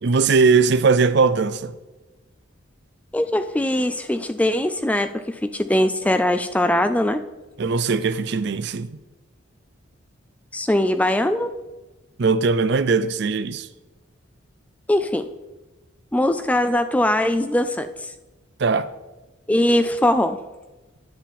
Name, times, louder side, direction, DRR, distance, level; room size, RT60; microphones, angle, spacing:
voice 1, 0.0-1.7 7.6-8.9 12.2-13.7 18.6-18.9, right 4 dB, 55° right, 0.5 m, -19 dB
voice 2, 3.1-7.2 10.5-11.5 14.9-15.3 16.1-17.9 19.5-20.4, left 1 dB, 5° left, 0.3 m, -21 dB
10.5 x 7.4 x 4.3 m
head